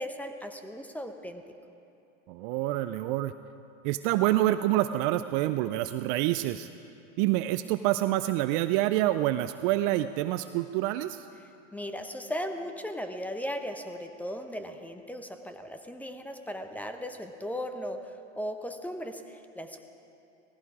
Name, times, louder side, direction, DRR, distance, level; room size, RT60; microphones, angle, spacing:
voice 1, 0.0-1.4 11.4-19.9, equal, 5° left, 7 dB, 0.7 m, -37 dB
voice 2, 2.3-3.3 3.8-6.7 7.2-11.3, right 15 dB, 45° right, 12 dB, 0.4 m, -27 dB
17.5 x 15.0 x 4.8 m, 2.8 s
hypercardioid pair, 115°, 39 cm